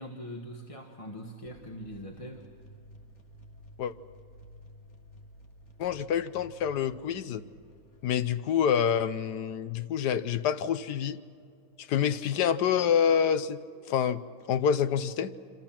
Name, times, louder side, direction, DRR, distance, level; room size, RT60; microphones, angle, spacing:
voice 1, 0.0-2.5, equal, 20° left, 1 dB, 1.4 m, -42 dB
sound 1, 1.4-8.0, equal, 45° left, 1.9 m, -53 dB
voice 2, 5.8-7.4 8.0-11.2 11.8-13.6 13.9-14.2 14.5-15.3, left 8 dB, 75° left, 13 dB, 1.3 m, -27 dB
27.0 x 26.5 x 5.9 m, 2.4 s
omnidirectional pair, 1.8 m